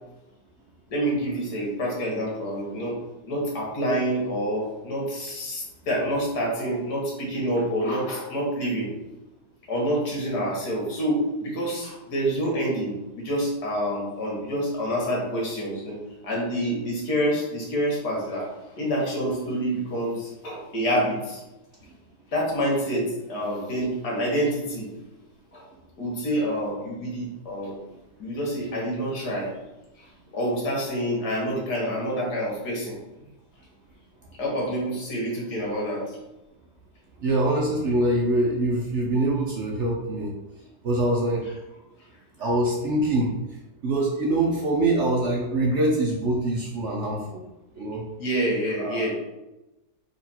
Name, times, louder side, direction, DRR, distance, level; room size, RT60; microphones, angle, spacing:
voice 1, 0.9-3.0 3.3-8.9 9.7-21.4 22.3-24.9 25.5-25.6 26.0-27.8 28.2-29.5 30.3-33.0 34.4-36.0 48.2-49.1, equal, 70° left, -3 dB, 1.9 m, -27 dB
voice 2, 37.2-40.3 40.8-41.5 42.4-43.3 43.8-47.4 47.8-48.0 48.8-49.1, right 1 dB, 60° right, -2 dB, 0.8 m, -24 dB
4.2 x 2.9 x 4.2 m, 1.0 s
omnidirectional pair, 1.7 m